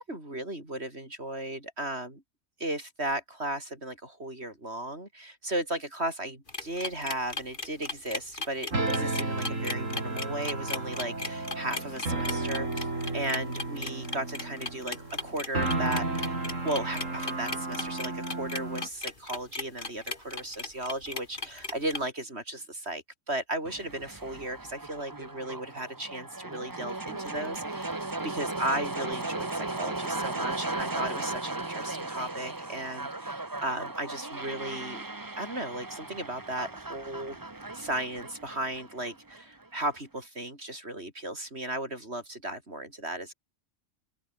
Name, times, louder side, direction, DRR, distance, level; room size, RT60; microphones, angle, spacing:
voice 1, 0.0-2.2 2.6-12.9 13.1-16.4 16.6-35.0 35.4-37.4 37.7-43.3, right 1 dB, 55° right, 7.2 m, -35 dB
sound 1, 6.5-22.0, left 3 dB, 40° left, 2.8 m, -36 dB
sound 2, 8.7-18.9, right 2 dB, 85° right, 4.9 m, -33 dB
sound 3, 23.6-39.7, right 2 dB, 15° right, 1.1 m, -37 dB
open air
omnidirectional pair, 1.3 m